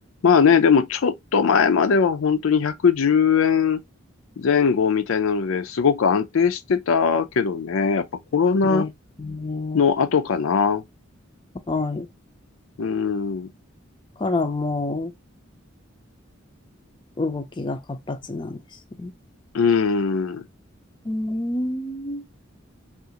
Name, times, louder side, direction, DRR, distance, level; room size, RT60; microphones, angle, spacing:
voice 1, 0.2-3.8 4.4-8.0 8.3-8.9 9.7-10.8 12.8-13.5 19.5-20.4, left 6 dB, 80° left, 0.5 m, -20 dB
voice 2, 9.2-9.8 11.7-12.1 14.2-15.1 17.2-18.6 19.0-19.1 21.1-22.2, left 2 dB, 25° left, 0.4 m, -27 dB
3.6 x 2.4 x 2.8 m
head